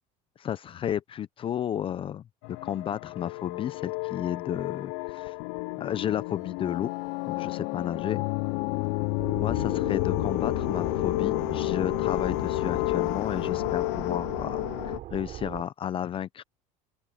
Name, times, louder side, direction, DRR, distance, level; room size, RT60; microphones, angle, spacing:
voice 1, 0.4-5.3 5.8-6.9 7.3-8.2 9.3-16.4, left 10 dB, 30° left, 0.5 m, -32 dB
sound 1, 2.4-15.0, left 27 dB, 85° left, 0.4 m, -30 dB
sound 2, 9.2-15.6, right 13 dB, 50° right, 3.2 m, -40 dB
open air
cardioid pair, 140°, 17 cm